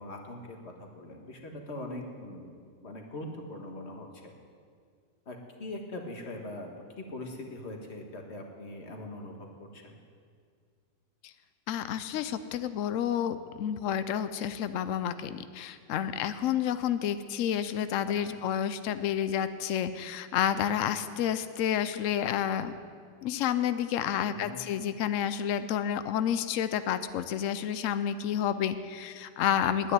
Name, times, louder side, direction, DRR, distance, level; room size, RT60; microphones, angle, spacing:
voice 1, 0.0-4.3 5.2-6.7 7.0-10.0 18.1-18.4 24.3-24.6, left 1 dB, 40° left, 2 dB, 1.7 m, -42 dB
voice 2, 11.7-22.7 23.2-29.9, left 9 dB, 85° left, 12 dB, 0.7 m, -30 dB
10.5 x 9.4 x 9.8 m, 2.1 s
omnidirectional pair, 1.9 m